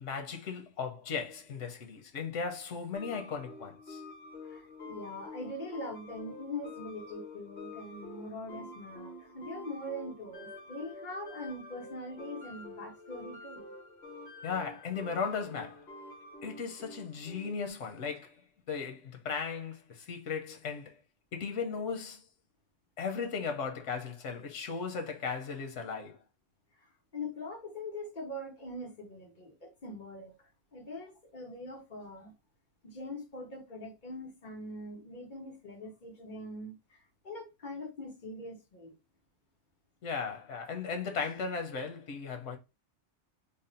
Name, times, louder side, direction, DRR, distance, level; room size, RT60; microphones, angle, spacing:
voice 1, 0.0-4.0 14.4-15.9 16.4-20.9 21.3-22.2 23.0-26.2 40.0-42.6, left 5 dB, 90° left, 1.1 m, -36 dB
sound 1, 2.9-17.7, left 2 dB, 60° left, 1.4 m, -48 dB
voice 2, 4.4-13.7 26.8-26.9 27.1-30.3 30.7-32.3 32.8-38.9, left 1 dB, 40° left, 1.3 m, -42 dB
3.5 x 2.1 x 4.0 m
omnidirectional pair, 1.2 m